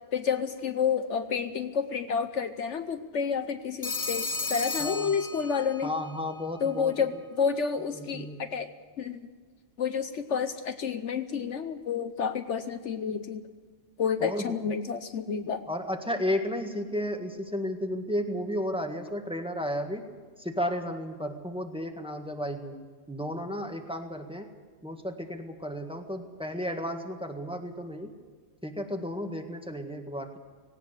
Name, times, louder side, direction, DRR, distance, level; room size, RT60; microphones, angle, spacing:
voice 1, 0.1-5.9 6.6-8.7 9.0-9.2 9.8-13.4 14.0-15.6, left 6 dB, 65° left, 10 dB, 1.1 m, -30 dB
Telephone, 3.8-5.9, left 3 dB, 30° left, 1.4 m, -33 dB
voice 2, 4.8-5.2 5.8-7.2 7.9-8.4 14.2-14.6 15.7-20.0 20.4-22.8 23.1-24.5 24.8-28.1 28.6-30.4, equal, 5° right, 4 dB, 1.7 m, -33 dB
18.0 x 18.0 x 8.2 m, 1.5 s
omnidirectional pair, 1.3 m